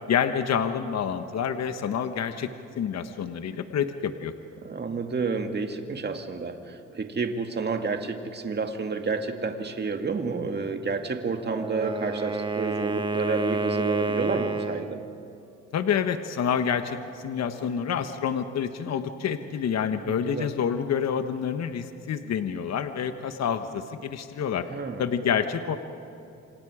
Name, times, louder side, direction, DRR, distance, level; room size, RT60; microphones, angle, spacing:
voice 1, 0.1-2.5 2.8-4.3 15.7-17.0 17.2-24.6 25.0-25.8, left 7 dB, 60° left, 8 dB, 1.2 m, -28 dB
voice 2, 4.6-15.0 19.9-20.5 24.7-25.1, right 4 dB, 35° right, 5 dB, 2.1 m, -30 dB
Wind instrument woodwind instrument, 11.4-15.0, right 3 dB, 15° right, 1.2 m, -29 dB
28.0 x 26.5 x 5.0 m, 2.8 s
cardioid pair, 90°, 30 cm